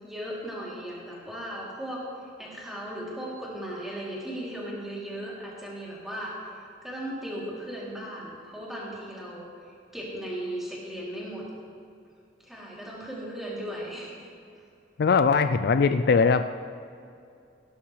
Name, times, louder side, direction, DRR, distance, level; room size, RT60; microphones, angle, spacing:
voice 1, 0.0-9.5 9.9-11.4 12.4-14.3, right 1 dB, ahead, -6 dB, 3.1 m, -37 dB
voice 2, 15.0-16.4, left 5 dB, 55° left, 10 dB, 0.3 m, -20 dB
17.5 x 11.5 x 3.3 m, 2.5 s
head